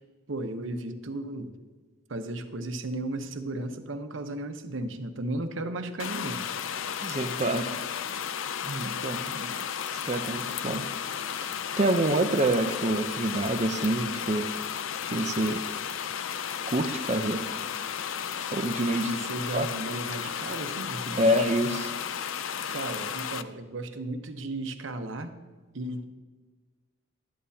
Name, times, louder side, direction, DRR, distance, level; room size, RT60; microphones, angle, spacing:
voice 1, 0.3-1.6 2.1-6.4 19.0-21.3 22.7-25.3 25.7-26.1, right 2 dB, 80° right, 7 dB, 0.9 m, -35 dB
sound 1, 6.0-23.4, left 8 dB, 80° left, 0.5 m, -34 dB
voice 2, 7.0-7.7 8.6-9.5 10.0-10.9 11.8-14.5 15.1-15.6 16.7-17.4 18.5-19.1 19.5-19.7 21.2-21.9, right 1 dB, 35° right, 9 dB, 0.6 m, -27 dB
12.5 x 10.5 x 2.8 m, 1.4 s
head